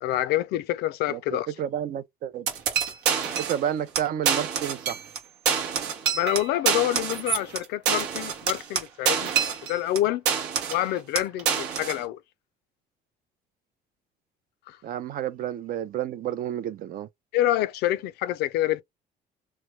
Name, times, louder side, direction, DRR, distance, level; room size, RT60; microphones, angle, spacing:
voice 1, 0.0-1.5 6.1-9.3 9.7-10.2 10.7-12.2 14.7-14.8 17.3-18.8, left 14 dB, 80° left, 0.4 m, -27 dB
voice 2, 1.1-2.5 3.4-5.0 14.8-17.1, right 10 dB, 55° right, 0.5 m, -30 dB
sound 1, 2.5-3.6 3.9-4.0 4.2-5.2 5.4-10.0 10.3-10.8 11.1-12.0, right 7 dB, 85° right, 0.9 m, -26 dB
3.0 x 2.2 x 3.1 m
cardioid pair, 110°, 17 cm